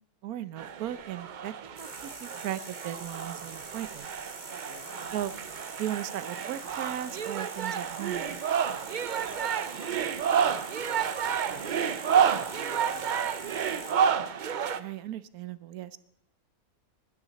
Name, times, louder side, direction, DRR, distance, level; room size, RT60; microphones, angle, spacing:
voice 1, 0.2-4.1 5.1-5.3 5.8-8.4 14.8-16.0, right 12 dB, 85° right, 16 dB, 1.2 m, -37 dB
sound 1, 0.6-14.8, right 8 dB, 60° right, 0.5 m, -30 dB
sound 2, 1.8-13.9, right 2 dB, 40° right, 2.8 m, -46 dB
voice 2, 4.7-5.1 9.1-14.0, left 2 dB, 65° left, 2 dB, 2.8 m, -49 dB
20.5 x 12.0 x 4.1 m, 0.77 s
omnidirectional pair, 1.5 m